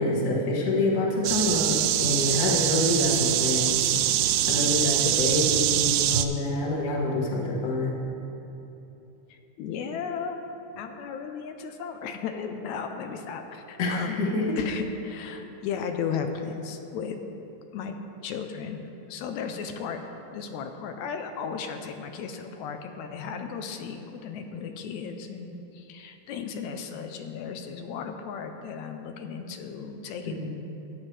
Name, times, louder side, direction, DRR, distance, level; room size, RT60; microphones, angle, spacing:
voice 1, 0.0-3.9 4.5-8.0 13.8-14.6 30.2-30.5, left 1 dB, 45° left, -3 dB, 1.3 m, -26 dB
sound 1, 1.2-6.3, right 12 dB, 90° right, 2.0 m, -24 dB
voice 2, 9.3-10.4 10.8-14.2 14.6-17.2 17.7-18.0 18.2-20.0 20.3-30.5, left 6 dB, 80° left, 6 dB, 1.9 m, -35 dB
14.5 x 9.3 x 3.3 m, 3.0 s
omnidirectional pair, 3.3 m